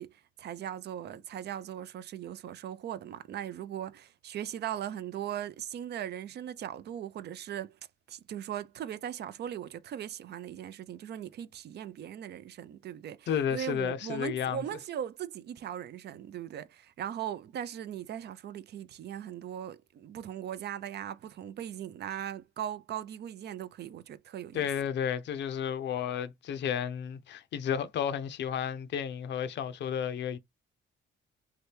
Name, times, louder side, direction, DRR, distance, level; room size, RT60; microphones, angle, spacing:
voice 1, 0.0-7.8 8.1-24.7, right 10 dB, 55° right, 0.4 m, -39 dB
voice 2, 13.3-14.6 24.5-30.4, left 8 dB, 65° left, 0.5 m, -32 dB
2.8 x 2.2 x 3.2 m
cardioid pair, 90°, 20 cm